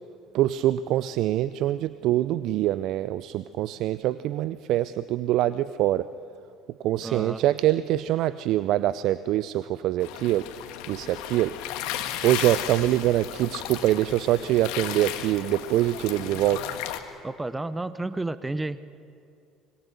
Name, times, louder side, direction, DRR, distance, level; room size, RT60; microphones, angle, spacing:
voice 1, 0.3-6.1 6.8-10.5 10.9-11.5 12.0-16.6, right 14 dB, 60° right, 16 dB, 0.5 m, -24 dB
voice 2, 7.0-7.4 17.2-18.8, right 2 dB, 15° right, 14 dB, 0.8 m, -31 dB
sound 1, 10.0-17.0, left 11 dB, 70° left, 1.6 m, -35 dB
25.5 x 22.5 x 6.9 m, 2.4 s
hypercardioid pair, 60°, 0 cm